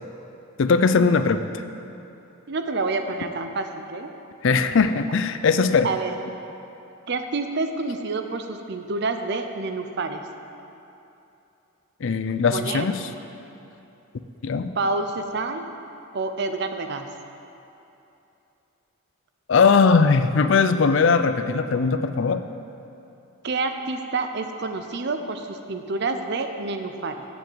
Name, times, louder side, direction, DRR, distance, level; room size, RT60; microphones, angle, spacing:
voice 1, 0.6-1.5 4.4-5.9 12.0-13.0 14.4-14.7 19.5-22.4, left 5 dB, 60° left, 10 dB, 0.4 m, -19 dB
voice 2, 2.5-4.1 5.8-6.2 7.1-10.2 12.5-12.9 14.7-15.7 16.1-17.1 23.4-27.2, right 3 dB, 55° right, 7 dB, 0.6 m, -28 dB
7.5 x 7.1 x 7.9 m, 2.8 s
head